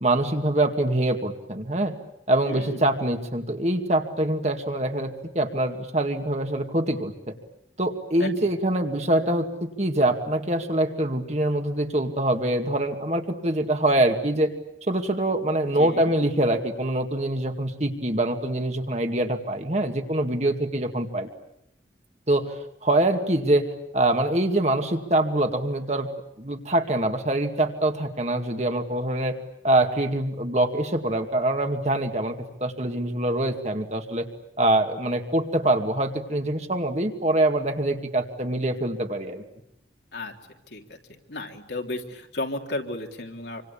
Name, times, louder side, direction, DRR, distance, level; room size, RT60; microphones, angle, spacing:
voice 1, 0.0-2.0 2.3-7.4 7.8-14.5 14.9-21.3 22.3-23.7 23.9-26.1 26.4-29.4 29.6-34.3 34.6-39.4, right 1 dB, 35° right, 5 dB, 2.3 m, -24 dB
voice 2, 2.5-2.9 8.2-8.5 15.8-16.1 40.1-40.3 40.7-43.6, left 2 dB, 70° left, 2 dB, 3.3 m, -34 dB
27.5 x 25.5 x 8.6 m, 0.78 s
head